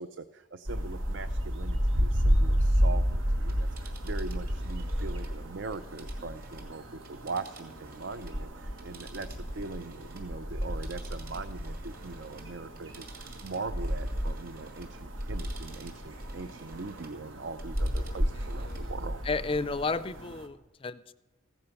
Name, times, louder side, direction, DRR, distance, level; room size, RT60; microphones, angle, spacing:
voice 1, 0.0-9.3 9.6-19.2, right 3 dB, 65° right, 12 dB, 0.5 m, -41 dB
sound 1, 0.7-20.5, equal, 85° right, 1.5 m, -32 dB
Telephone, 3.5-8.4 8.7-17.2 17.5-18.9 19.3-19.4, right 5 dB, 45° right, 2.3 m, -54 dB
voice 2, 18.6-18.9 19.2-21.1, left 4 dB, 25° left, 15 dB, 0.4 m, -33 dB
15.5 x 13.0 x 5.9 m, 1.1 s
head